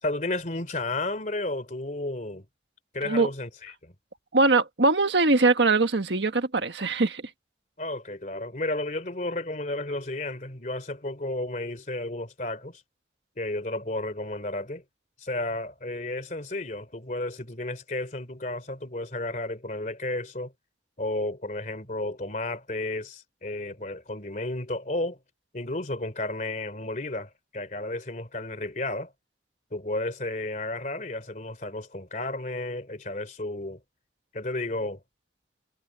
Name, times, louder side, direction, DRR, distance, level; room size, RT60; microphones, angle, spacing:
voice 1, 0.0-2.4 2.9-3.9 7.8-12.8 13.4-14.8 15.2-20.5 21.0-25.2 25.5-29.1 29.7-33.8 34.3-35.0, left 2 dB, 45° left, 3.1 m, -32 dB
voice 2, 4.3-7.2, right 3 dB, 90° right, 1.5 m, -22 dB
head